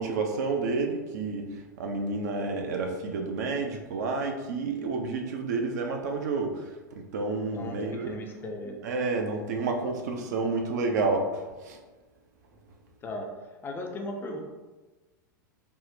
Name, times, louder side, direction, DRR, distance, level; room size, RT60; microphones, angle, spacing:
voice 1, 0.0-8.1 8.8-11.8, right 3 dB, 60° right, 3 dB, 0.4 m, -30 dB
voice 2, 7.5-8.8 13.0-13.3 13.6-14.4, left 1 dB, 20° left, 2 dB, 0.4 m, -36 dB
3.5 x 2.0 x 2.6 m, 1.2 s
figure-of-eight pair, 90°, 11 cm